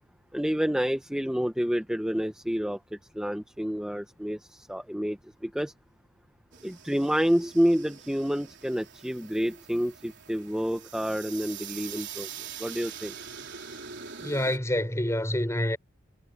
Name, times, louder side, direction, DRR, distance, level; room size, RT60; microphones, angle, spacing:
voice 1, 0.3-5.7 6.6-13.2, equal, 5° right, 1.0 m, -29 dB
sound 1, 6.5-14.6, right 7 dB, 55° right, 3.9 m, -43 dB
voice 2, 14.2-15.8, left 1 dB, 15° left, 5.3 m, -27 dB
head